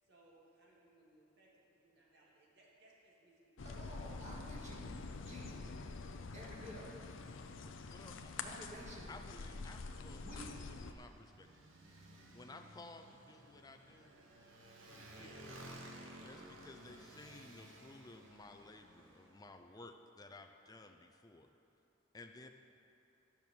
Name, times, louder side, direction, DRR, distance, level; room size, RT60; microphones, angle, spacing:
voice 1, 0.0-3.7, right 1 dB, 55° right, -5 dB, 2.3 m, -67 dB
sound 1, 3.6-10.9, left 4 dB, 70° left, 0.6 m, -47 dB
voice 2, 3.6-5.7 6.3-7.0 8.4-9.1 10.1-10.6, equal, 35° right, -5 dB, 2.1 m, -51 dB
voice 3, 7.9-8.3 9.1-11.5 12.3-14.1 14.9-15.6 16.2-21.5 22.1-22.5, left 2 dB, 20° left, 5 dB, 0.5 m, -56 dB
Motorcycle, 9.6-19.5, right 1 dB, 80° right, 1.2 m, -56 dB
10.5 x 6.1 x 7.1 m, 2.8 s
head